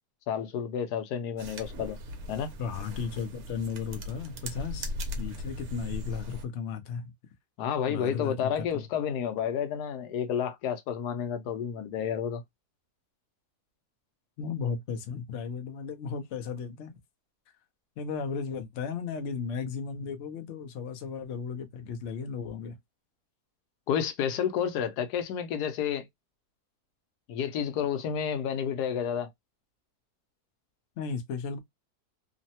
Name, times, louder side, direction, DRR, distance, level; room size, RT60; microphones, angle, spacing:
voice 1, 0.3-2.0 2.3-2.5 7.6-12.4 23.9-26.1 27.3-29.3, left 8 dB, 85° left, 1.1 m, -30 dB
sound 1, 1.4-6.4, left 1 dB, 75° right, 1.1 m, -38 dB
voice 2, 2.6-4.9 5.2-7.1 7.9-8.9 14.4-16.9 18.0-22.8 31.0-31.6, left 6 dB, 60° left, 0.8 m, -35 dB
3.1 x 2.1 x 2.7 m
omnidirectional pair, 1.7 m